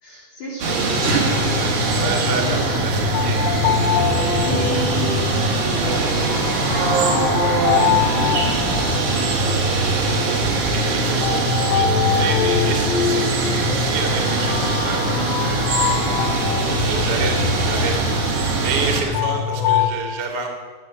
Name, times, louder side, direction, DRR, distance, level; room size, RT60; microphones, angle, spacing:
voice 1, 0.0-1.6 2.0-2.9 4.3-9.9 14.7-14.8 19.0-19.2, right 2 dB, 45° left, -6 dB, 3.1 m, -33 dB
sound 1, 0.6-19.0, right 3 dB, 55° right, 2.3 m, -22 dB
sound 2, 0.9-19.9, left 6 dB, 75° left, 3.1 m, -24 dB
voice 2, 1.5-3.5 10.6-20.5, right 4 dB, 80° right, 1 dB, 0.9 m, -29 dB
14.5 x 6.3 x 8.4 m, 1.5 s
omnidirectional pair, 5.9 m